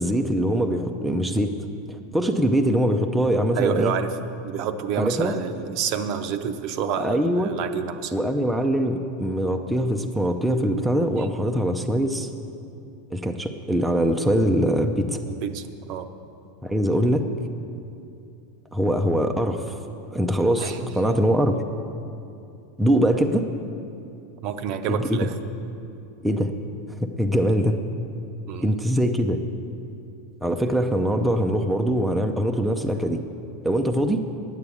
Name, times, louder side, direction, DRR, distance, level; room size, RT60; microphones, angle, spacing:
voice 1, 0.0-1.5 1.9-3.9 5.0-5.3 7.0-7.5 8.1-12.3 13.1-15.2 16.6-17.2 18.7-19.8 20.1-21.6 22.8-23.5 25.1-25.2 26.2-26.5 26.9-27.8 28.6-29.4 30.4-33.2 33.6-34.2, equal, 5° right, 3 dB, 0.5 m, -22 dB
voice 2, 3.5-4.2 4.4-8.1 11.2-11.3 15.3-16.1 20.6-21.1 24.4-25.3 28.5-28.7, right 8 dB, 45° right, 9 dB, 0.6 m, -29 dB
9.5 x 8.9 x 8.4 m, 2.6 s
supercardioid pair, 155°, 0 cm